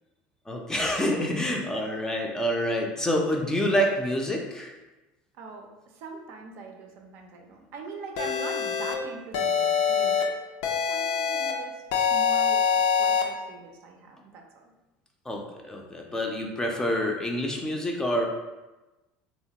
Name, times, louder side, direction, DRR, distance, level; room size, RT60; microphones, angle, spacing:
voice 1, 0.5-4.7 15.3-18.3, equal, 15° left, 1 dB, 0.4 m, -27 dB
voice 2, 5.4-5.7 5.9-10.3 10.9-14.7, right 3 dB, 65° right, 2 dB, 0.5 m, -42 dB
sound 1, 8.2-8.9 9.3-10.2 10.6-11.5 11.9-13.2, left 7 dB, 80° left, 0.4 m, -24 dB
3.0 x 2.2 x 2.8 m, 1.1 s
supercardioid pair, 110°, 5 cm